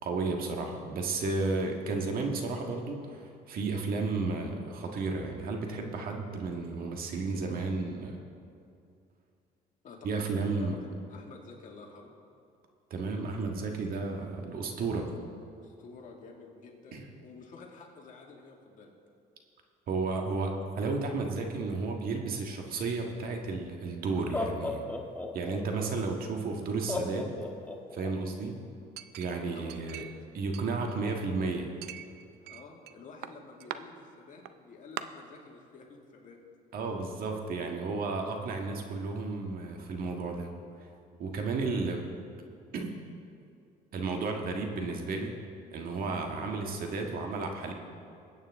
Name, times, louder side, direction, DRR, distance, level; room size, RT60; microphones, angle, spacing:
voice 1, 0.0-8.2 10.0-10.8 12.9-15.1 16.9-17.0 19.9-24.8 25.3-27.3 27.9-28.6 29.1-30.0 30.3-31.7 36.7-40.5 40.8-40.9 41.2-42.0 42.7-43.0 43.9-45.4 45.7-47.7, right 3 dB, 60° right, 2 dB, 1.7 m, -33 dB
voice 2, 9.8-12.1 15.5-18.9 29.4-30.1 32.4-36.4 46.1-46.2, left 4 dB, 50° left, 0 dB, 2.2 m, -50 dB
Laughter, 23.4-23.5 24.2-25.9 26.9-28.1, left 2 dB, 10° left, 1.2 m, -35 dB
Chink clink, 29.0-30.2 30.5-31.3 31.8-32.9 33.2-33.8 34.5-34.6 35.0-35.1, right 12 dB, 80° right, 0.5 m, -42 dB
21.0 x 8.9 x 3.7 m, 2.5 s
cardioid pair, 110°, 17 cm